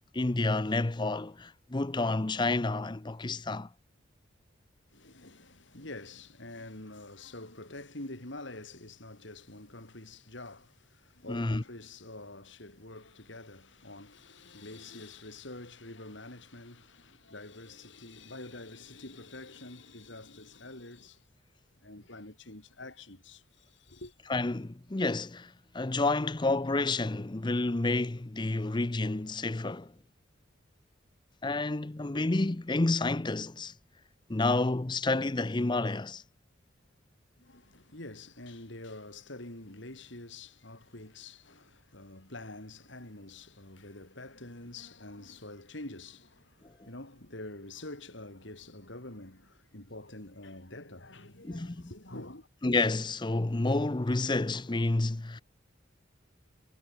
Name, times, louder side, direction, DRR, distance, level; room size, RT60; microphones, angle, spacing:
voice 1, 0.1-3.7 11.3-11.6 24.3-29.9 31.4-33.7 34.3-36.2 51.4-51.9 52.6-55.4, left 2 dB, 20° left, 0.6 m, -29 dB
voice 2, 4.9-21.2 21.8-24.1 37.4-52.5, left 2 dB, 65° left, 3.9 m, -46 dB
head